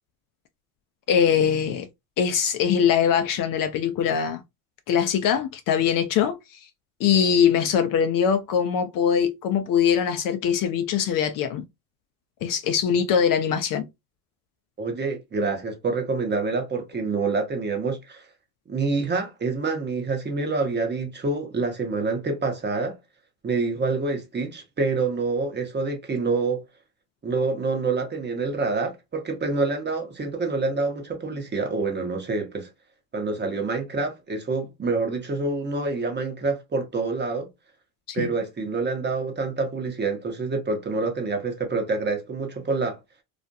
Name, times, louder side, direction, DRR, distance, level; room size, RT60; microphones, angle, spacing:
voice 1, 1.1-1.9 2.2-4.4 4.9-6.6 7.0-11.6 12.4-13.8 38.1-38.3, left 8 dB, 50° left, 0.5 m, -22 dB
voice 2, 14.8-18.3 18.7-23.0 23.4-26.6 27.2-32.7 33.1-37.5 38.1-43.0, right 3 dB, 25° right, 0.8 m, -27 dB
2.4 x 2.1 x 2.6 m
supercardioid pair, 85°, 45 cm